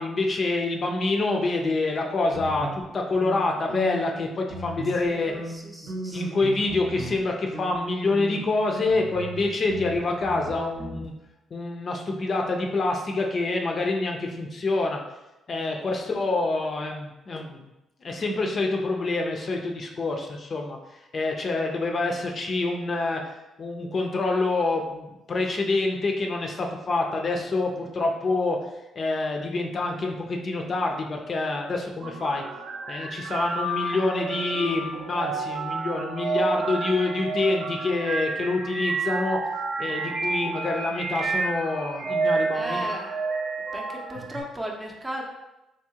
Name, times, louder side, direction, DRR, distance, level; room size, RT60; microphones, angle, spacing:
voice 1, 0.0-2.7 2.9-5.3 5.8-11.1 11.5-15.0 15.5-17.6 18.0-20.8 21.1-23.2 23.6-28.6 29.0-32.4 32.9-39.4 39.8-42.8, left 3 dB, 45° left, 2 dB, 0.5 m, -26 dB
sound 1, 2.3-4.2 4.5-5.1 5.3-7.2 7.5-7.8 8.0-11.1, right 1 dB, 85° right, 1.2 m, -37 dB
voice 2, 5.0-6.4 15.8-16.4 36.4-36.5 39.8-40.0 40.3-40.4 42.5-43.1 43.7-45.2, equal, 15° right, 0 dB, 0.6 m, -37 dB
sound 2, 32.0-44.4, right 3 dB, 65° right, 0.5 m, -30 dB
3.5 x 2.8 x 2.8 m, 0.96 s
cardioid pair, 90°, 0 cm